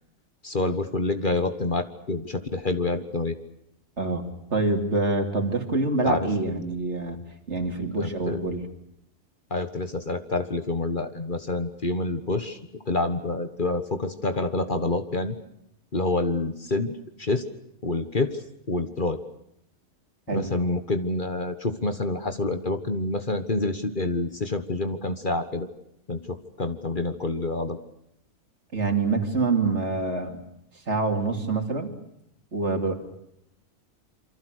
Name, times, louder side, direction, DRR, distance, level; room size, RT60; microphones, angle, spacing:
voice 1, 0.4-3.4 6.0-6.3 8.0-8.4 9.5-15.3 15.9-16.9 17.2-17.4 17.8-19.2 20.3-25.7 26.1-27.8, left 2 dB, 40° left, 9 dB, 1.6 m, -27 dB
voice 2, 4.5-7.2 7.5-8.6 20.3-20.5 28.7-30.4 30.9-31.9 32.5-32.9, right 3 dB, 55° right, 5 dB, 3.2 m, -26 dB
28.0 x 24.5 x 6.5 m, 0.77 s
omnidirectional pair, 1.4 m